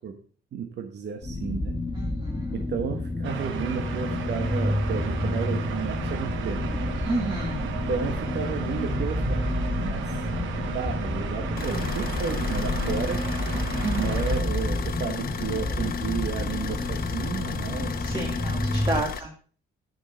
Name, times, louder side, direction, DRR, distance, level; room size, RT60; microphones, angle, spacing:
voice 1, 0.5-1.8 2.5-6.9 7.9-10.1 10.5-13.3 14.0-19.1, right 6 dB, 60° right, 5 dB, 1.2 m, -33 dB
sound 1, 1.2-19.0, left 1 dB, 15° left, 1.8 m, -29 dB
voice 2, 1.9-2.5 7.0-7.7 13.8-14.2 18.0-19.3, right 2 dB, 20° right, 0 dB, 1.9 m, -31 dB
sound 2, 3.2-14.4, right 8 dB, 80° right, 1.2 m, -35 dB
sound 3, 11.6-19.2, left 7 dB, 50° left, 1.1 m, -35 dB
9.9 x 5.3 x 5.2 m, 0.42 s
cardioid pair, 90°, 20 cm